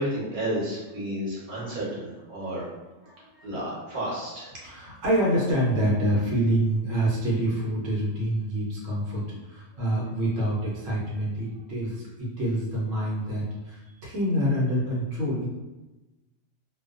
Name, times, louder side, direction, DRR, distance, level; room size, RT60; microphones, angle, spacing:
voice 1, 0.0-2.6 3.4-4.5, right 1 dB, 45° right, -7 dB, 1.0 m, -31 dB
voice 2, 2.8-3.4 4.5-15.5, right 1 dB, 80° right, -5 dB, 1.1 m, -27 dB
2.3 x 2.2 x 2.4 m, 1.1 s
omnidirectional pair, 1.3 m